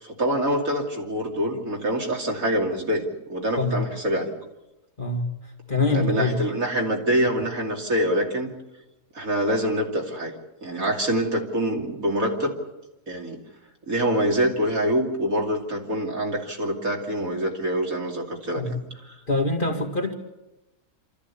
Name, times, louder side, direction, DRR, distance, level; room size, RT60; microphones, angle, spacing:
voice 1, 0.0-3.0 3.3-4.3 5.9-8.5 9.1-10.3 10.6-12.5 13.1-13.4 13.9-18.8 19.1-19.2, equal, 65° right, 3.2 m, -25 dB
voice 2, 5.7-6.4 18.6-18.8 19.3-20.1, left 2 dB, 35° left, 2.3 m, -24 dB
27.0 x 13.5 x 8.4 m
omnidirectional pair, 1.6 m